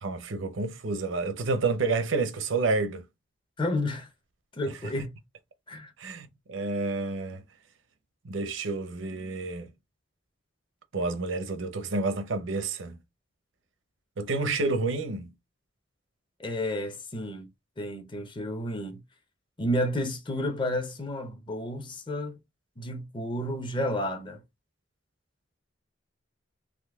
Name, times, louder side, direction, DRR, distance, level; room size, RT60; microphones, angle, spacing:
voice 1, 0.0-3.0 4.7-4.9 6.0-7.4 8.2-9.7 10.9-13.0 14.2-15.3, right 3 dB, 85° right, 0.6 m, -29 dB
voice 2, 3.6-4.1 4.6-5.1 5.7-5.9 16.4-17.5 17.8-19.0 19.6-22.4 22.8-24.4, left 1 dB, 25° left, 0.6 m, -31 dB
3.7 x 3.0 x 2.3 m
head